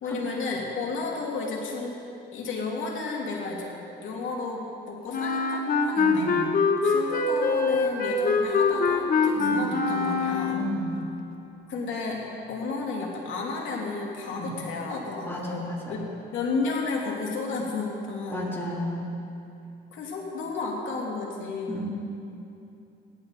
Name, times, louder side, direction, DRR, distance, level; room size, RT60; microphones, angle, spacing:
voice 1, 0.0-2.0 2.3-6.3 6.8-10.6 11.7-18.5 19.9-21.9, left 3 dB, 75° left, -2 dB, 2.6 m, -32 dB
Wind instrument woodwind instrument, 5.1-10.8, left 4 dB, 45° left, 1.1 m, -24 dB
voice 2, 6.0-6.3 9.4-9.7 10.5-11.0 14.3-14.5 15.3-16.0 18.3-19.1 21.7-21.9, right 1 dB, 10° left, -5 dB, 3.2 m, -33 dB
17.0 x 11.5 x 4.1 m, 2.7 s
cardioid pair, 90°, 20 cm